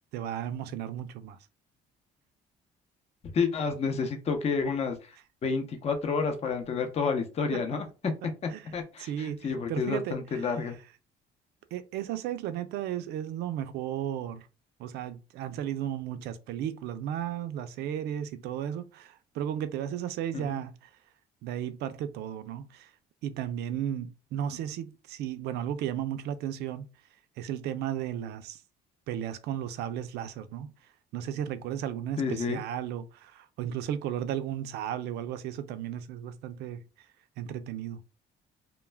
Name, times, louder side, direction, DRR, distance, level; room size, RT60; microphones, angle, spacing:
voice 1, 0.1-1.4 7.5-7.6 8.5-10.5 11.7-14.5 14.8-20.9 21.4-22.9 23.2-26.9 27.4-28.6 29.1-30.7 31.1-36.8 37.4-38.0, right 10 dB, 75° right, 0.4 m, -34 dB
voice 2, 3.3-5.1 5.4-7.8 8.7-10.8 20.3-20.6 32.2-32.6, left 5 dB, 40° left, 0.6 m, -30 dB
2.2 x 2.2 x 3.2 m
cardioid pair, 110°, 17 cm